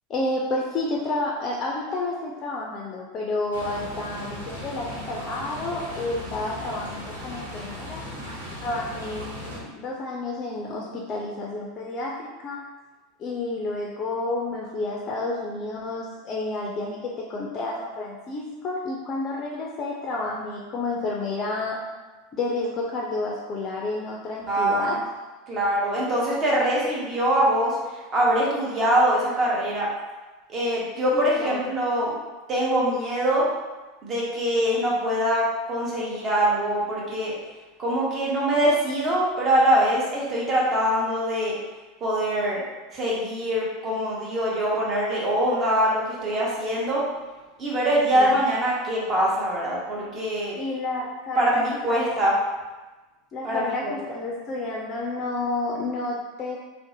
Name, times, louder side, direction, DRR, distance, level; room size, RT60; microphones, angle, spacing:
voice 1, 0.1-8.0 8.6-12.6 13.2-21.8 22.3-25.0 31.1-31.6 48.1-48.3 50.6-52.1 53.3-56.6, left 2 dB, 40° left, -2 dB, 0.3 m, -30 dB
sound 1, 3.5-9.6, left 1 dB, 85° right, 0.7 m, -37 dB
voice 2, 24.5-25.0 25.5-27.7 28.1-29.9 30.5-32.1 32.5-33.5 34.0-37.3 37.8-41.5 42.0-42.6 42.9-47.0 47.6-50.5 51.4-52.4 53.4-53.9, right 1 dB, 35° right, -5 dB, 0.8 m, -23 dB
2.5 x 2.0 x 2.7 m, 1.2 s
hypercardioid pair, 85°, 0 cm